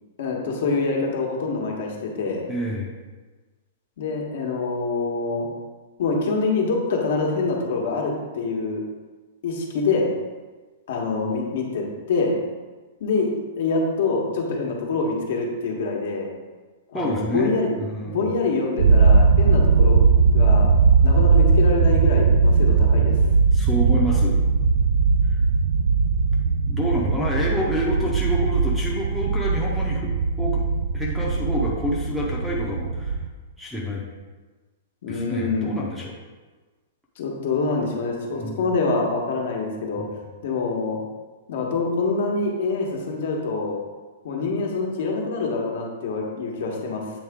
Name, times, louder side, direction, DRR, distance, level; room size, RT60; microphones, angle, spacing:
voice 1, 0.2-2.5 4.0-5.5 6.0-8.8 9.4-10.1 10.9-12.3 13.0-13.3 13.6-16.3 16.9-17.7 18.0-20.7 21.0-23.2 35.0-35.8 37.2-40.0 40.4-41.0 41.5-43.8 44.2-47.0, left 3 dB, 60° left, 0 dB, 1.2 m, -25 dB
voice 2, 2.5-2.9 16.9-18.2 23.5-24.4 25.3-25.4 26.7-30.1 30.4-30.6 30.9-33.1 33.6-34.0 35.1-36.1 38.3-38.7 39.9-40.1, equal, ahead, -4 dB, 0.7 m, -28 dB
sound 1, 18.8-33.3, right 4 dB, 80° right, 0.4 m, -19 dB
8.0 x 3.9 x 3.6 m, 1.3 s
supercardioid pair, 170°, 0 cm